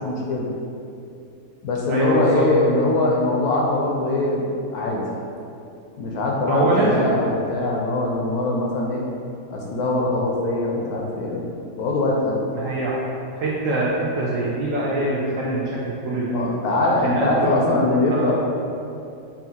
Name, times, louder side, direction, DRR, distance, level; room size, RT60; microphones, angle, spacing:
voice 1, 0.1-0.5 1.6-4.4 4.7-5.0 6.0-9.0 9.5-11.5 11.8-12.4 16.3-18.4, left 2 dB, 70° left, -2 dB, 1.0 m, -22 dB
voice 2, 1.9-2.4 6.5-7.2 12.5-13.0 13.3-16.5 17.0-18.4, right 2 dB, 70° right, -6 dB, 0.8 m, -23 dB
5.5 x 2.3 x 2.8 m, 2.6 s
omnidirectional pair, 1.8 m